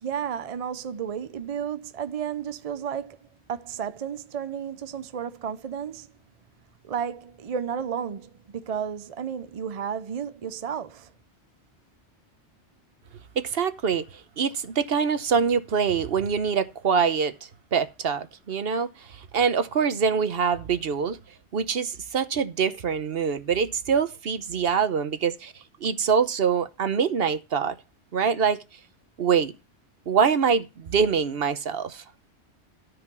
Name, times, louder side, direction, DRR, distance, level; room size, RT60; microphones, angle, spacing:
voice 1, 0.0-6.1 6.8-11.1, right 8 dB, 45° right, 0.5 m, -32 dB
voice 2, 13.4-14.0 14.4-17.3 17.7-21.2 21.5-25.5 25.8-27.7 28.1-28.6 29.2-29.5 30.1-32.0, right 6 dB, 60° right, 1.0 m, -24 dB
13.5 x 5.0 x 6.0 m
omnidirectional pair, 1.2 m